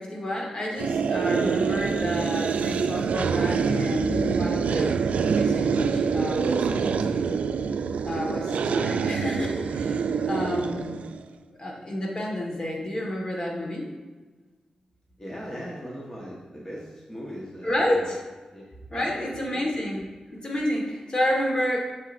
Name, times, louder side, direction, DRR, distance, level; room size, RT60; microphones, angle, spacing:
voice 1, 0.0-6.9 8.0-10.9 11.6-13.9 17.6-18.2 18.9-21.8, left 1 dB, 40° left, -1 dB, 1.5 m, -30 dB
sound 1, 0.8-11.2, right 6 dB, 90° right, 0.3 m, -26 dB
voice 2, 15.2-18.1 18.5-18.6 18.9-19.6, equal, 20° left, -5 dB, 1.2 m, -39 dB
7.5 x 6.6 x 2.6 m, 1.3 s
wide cardioid pair, 95°, 2 cm